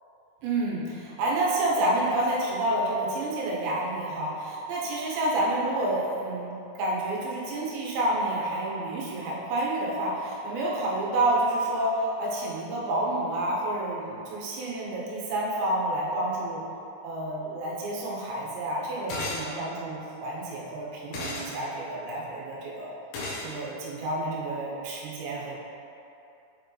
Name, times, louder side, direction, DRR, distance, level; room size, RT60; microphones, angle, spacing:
voice 1, 0.4-16.6 17.0-22.9 23.4-25.5, right 1 dB, 90° right, -4 dB, 3.2 m, -29 dB
sound 1, 19.1-19.5 21.1-21.5 23.1-23.5, left 2 dB, 75° left, 2.1 m, -33 dB
7.5 x 4.6 x 3.2 m, 2.8 s
omnidirectional pair, 4.9 m